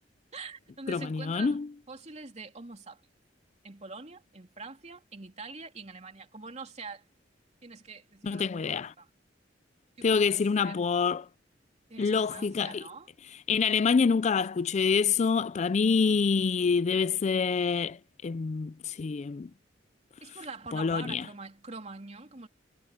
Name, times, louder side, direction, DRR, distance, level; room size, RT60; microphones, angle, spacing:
voice 1, 0.3-1.6 1.9-3.0 3.6-7.0 7.6-9.1 10.0-10.8 11.9-13.1 20.2-22.5, right 4 dB, 35° right, 3.0 m, -44 dB
voice 2, 0.9-1.7 8.2-8.9 10.0-11.3 12.0-12.8 13.5-18.0 18.2-19.5 20.7-21.2, left 5 dB, 40° left, 0.4 m, -26 dB
head